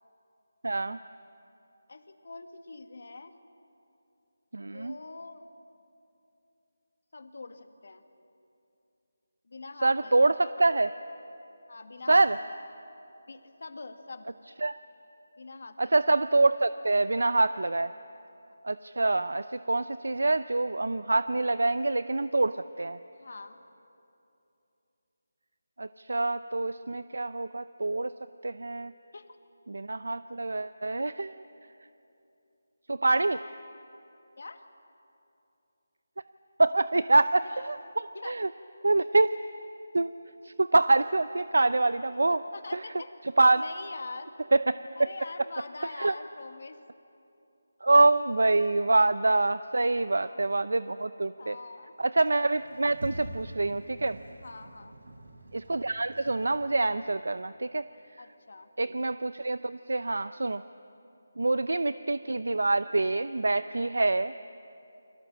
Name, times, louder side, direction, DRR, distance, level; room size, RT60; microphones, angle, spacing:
voice 1, 0.6-1.0 4.5-4.9 9.8-10.9 12.1-12.4 14.6-14.7 15.8-17.9 18.6-23.0 25.8-28.1 28.4-28.9 29.7-31.4 32.9-33.4 36.6-38.5 38.8-39.3 39.9-40.1 40.4-42.4 42.7-42.8 43.4-43.6 44.5-44.8 46.0-46.1 47.8-51.6 52.0-54.2 55.5-57.8 58.8-60.6 61.4-64.3, right 2 dB, 80° right, 13 dB, 0.7 m, -25 dB
voice 2, 1.9-3.3 4.7-5.5 7.1-8.0 9.4-10.3 11.7-12.6 13.3-14.4 15.4-16.0 18.5-18.6 23.2-23.6 29.1-29.4 33.2-33.5 34.4-34.7 37.4-37.7 38.1-38.3 38.8-39.0 42.2-44.3 45.0-46.8 49.9-50.6 51.4-52.0 54.4-55.0 58.2-58.7, left 3 dB, 45° left, 8 dB, 1.8 m, -44 dB
Sliding door, 52.5-57.0, right 1 dB, 55° right, 5.7 m, -45 dB
29.5 x 26.0 x 7.6 m, 2.8 s
figure-of-eight pair, 180°, 0 cm